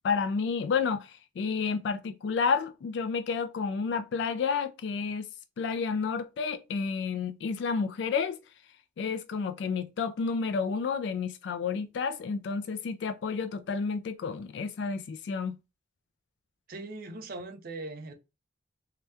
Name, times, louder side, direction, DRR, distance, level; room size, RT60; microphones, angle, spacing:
voice 1, 0.0-5.3 5.6-8.4 9.0-15.6, left 5 dB, 65° left, 0.3 m, -30 dB
voice 2, 16.7-18.1, right 2 dB, 50° right, 0.5 m, -40 dB
2.7 x 2.2 x 3.3 m
head